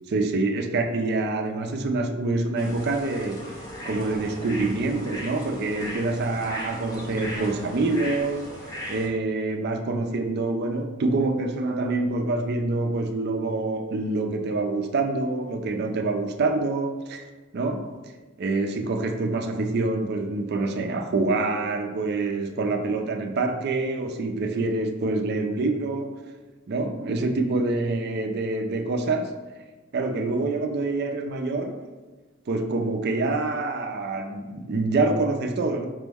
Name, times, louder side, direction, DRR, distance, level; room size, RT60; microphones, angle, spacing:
voice 1, 0.1-8.5 8.9-17.3 17.5-18.0 18.4-26.2 26.7-29.3 29.9-31.8 32.5-35.9, right 3 dB, 50° right, 0.4 m, -26 dB
sound 1, 2.6-9.1, equal, 20° left, 0.7 m, -37 dB
5.2 x 2.0 x 3.4 m
head